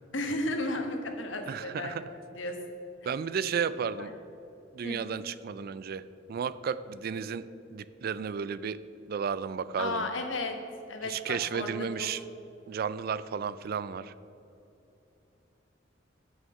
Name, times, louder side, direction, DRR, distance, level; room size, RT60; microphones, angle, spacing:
voice 1, 0.1-1.9 2.3-2.6 4.0-4.1 4.8-5.0 9.8-10.6 10.9-11.7 12.0-12.1, left 2 dB, 85° left, 5 dB, 1.2 m, -33 dB
voice 2, 1.5-2.1 3.0-4.1 4.7-8.8 9.1-10.1 11.0-12.2 12.7-14.1, right 6 dB, 55° right, 16 dB, 0.3 m, -33 dB
9.2 x 6.4 x 6.5 m, 2.9 s
head